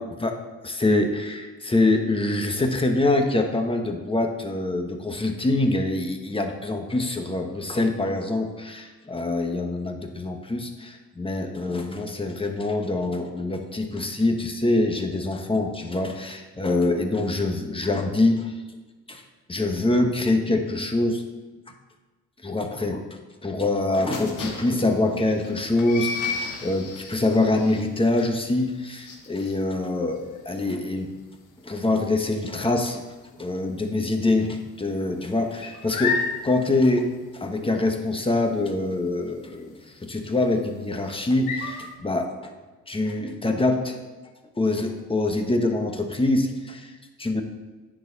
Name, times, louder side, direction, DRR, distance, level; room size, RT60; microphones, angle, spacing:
voice 1, 0.0-18.6 19.1-19.2 19.5-21.2 21.7-21.8 22.4-23.1 23.4-31.1 31.6-33.0 33.4-42.5 42.9-44.0 44.6-47.4, left 2 dB, 20° left, 4 dB, 1.3 m, -25 dB
sound 1, 24.1-33.6 33.9-34.2 34.5-41.9, left 5 dB, 85° left, 1.5 m, -34 dB
9.9 x 6.6 x 4.1 m, 1.2 s
cardioid pair, 90°, 30 cm